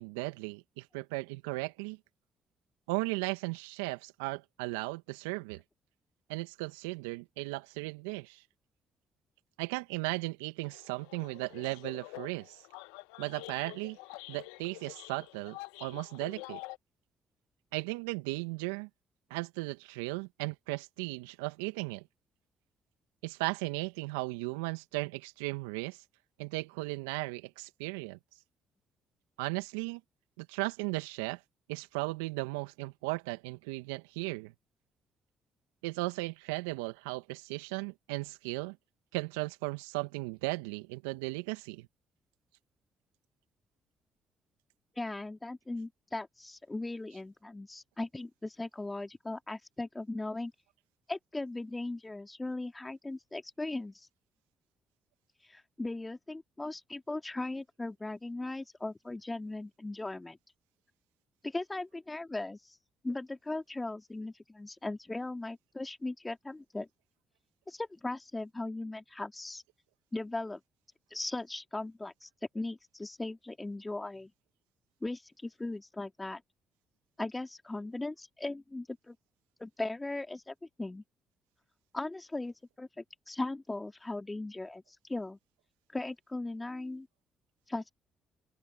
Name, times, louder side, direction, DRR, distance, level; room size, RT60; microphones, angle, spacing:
voice 1, 0.0-2.0 2.9-5.6 6.3-8.4 9.6-12.6 13.2-14.0 14.3-16.6 17.7-18.9 19.3-22.0 23.2-26.0 26.4-28.2 29.4-30.0 30.4-31.4 31.7-34.5 35.8-38.8 39.1-41.9, right 24 dB, 80° right, 2.1 m, -36 dB
sound 1, 10.6-16.8, left 23 dB, 80° left, 1.8 m, -47 dB
voice 2, 45.0-50.5 51.1-54.1 55.5-60.4 61.4-62.8 63.0-66.9 67.7-69.6 70.1-70.6 71.1-72.3 72.5-74.3 75.0-76.4 77.2-79.2 79.6-81.0 81.9-84.8 85.1-85.4 85.9-87.1 87.7-87.9, left 2 dB, 20° left, 2.6 m, -38 dB
open air
hypercardioid pair, 45°, 0 cm